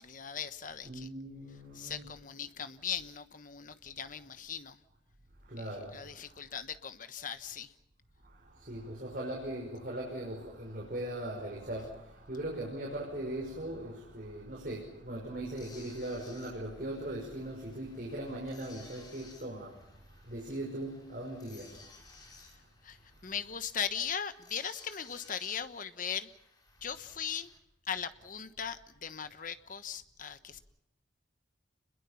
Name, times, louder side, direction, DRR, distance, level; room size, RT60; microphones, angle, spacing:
voice 1, 0.0-1.1 1.7-4.8 5.9-7.7 22.8-23.0 23.2-26.3 26.8-27.5 27.9-30.6, left 7 dB, 45° left, 1.2 m, -39 dB
voice 2, 0.8-2.2 5.4-6.4 8.2-22.5, right 1 dB, 50° right, 5.6 m, -40 dB
sound 1, 15.5-27.6, left 3 dB, 20° left, 4.8 m, -58 dB
29.5 x 21.5 x 5.8 m
head